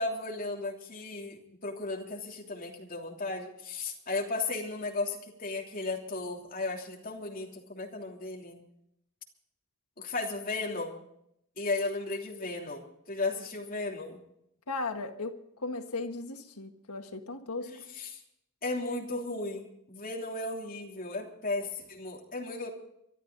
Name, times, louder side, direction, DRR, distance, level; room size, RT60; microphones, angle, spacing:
voice 1, 0.0-8.6 10.0-11.0 11.6-14.2 17.6-18.2 18.6-22.7, left 3 dB, 40° left, 3.1 m, -35 dB
voice 2, 14.7-17.7, left 3 dB, 90° left, 1.6 m, -36 dB
25.0 x 12.0 x 4.0 m
head